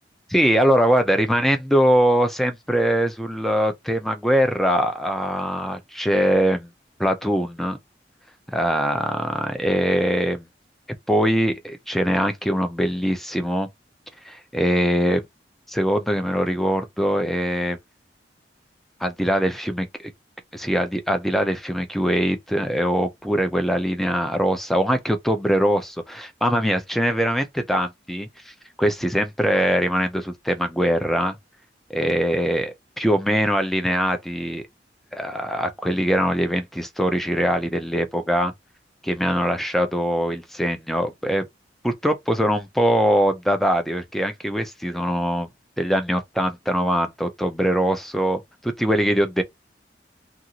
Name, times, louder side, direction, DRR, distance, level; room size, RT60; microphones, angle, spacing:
voice 1, 0.3-6.7 7.0-7.8 8.5-10.5 11.1-13.7 14.2-15.2 15.7-17.8 19.0-20.1 20.5-28.3 28.8-31.4 31.9-34.6 35.1-38.5 39.0-41.5 41.8-45.5 45.8-49.4, equal, ahead, 0.5 m, -22 dB
2.6 x 2.4 x 2.8 m
head